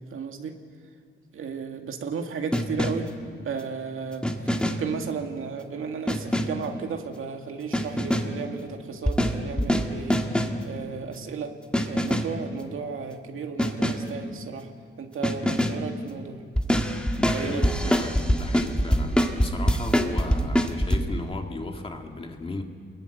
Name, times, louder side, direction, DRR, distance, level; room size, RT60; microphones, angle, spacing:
voice 1, 0.1-0.6 1.3-3.1 3.4-11.5 11.8-14.7 15.0-16.4 17.3-17.9, right 5 dB, 75° right, 4 dB, 2.1 m, -34 dB
sound 1, 2.5-3.2 4.2-5.0 6.1-6.7 7.7-8.4 9.1-10.7 11.7-12.4 13.6-14.1 15.2-15.9 16.6-21.0, equal, 5° left, 1.7 m, -24 dB
voice 2, 17.2-22.6, left 2 dB, 25° left, 3 dB, 2.0 m, -35 dB
29.0 x 22.0 x 9.2 m, 2.1 s
wide cardioid pair, 165°, 21 cm